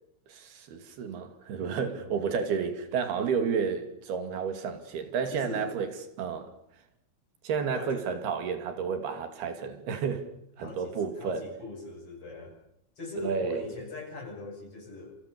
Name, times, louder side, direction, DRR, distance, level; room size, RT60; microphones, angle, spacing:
voice 1, 0.3-5.9 6.2-6.5 7.4-10.3 10.6-11.5 13.2-13.6, right 6 dB, 85° right, 4.5 m, -31 dB
voice 2, 1.6-2.2 5.3-5.7 7.7-8.1 10.6-12.5 13.0-15.2, left 3 dB, 35° left, 8.9 m, -41 dB
28.0 x 27.0 x 7.0 m
omnidirectional pair, 4.4 m